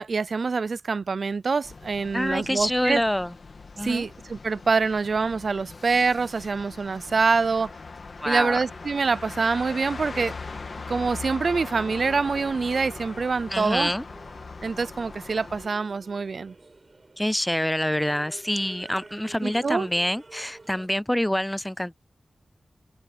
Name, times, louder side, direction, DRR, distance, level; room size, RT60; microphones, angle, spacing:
voice 1, 0.0-3.0 3.8-7.7 8.3-10.3 10.9-13.9 14.6-16.5 19.4-19.9, right 4 dB, 65° right, 0.4 m, -25 dB
sound 1, 1.6-15.7, left 4 dB, 60° left, 1.7 m, -41 dB
voice 2, 2.1-3.3 3.8-4.1 8.2-8.6 13.5-14.0 17.2-22.0, left 1 dB, 5° left, 0.4 m, -26 dB
sound 2, 5.7-21.0, left 2 dB, 25° left, 5.7 m, -62 dB
sound 3, 8.2-20.9, right 3 dB, 40° right, 4.2 m, -50 dB
open air
wide cardioid pair, 95°, 0 cm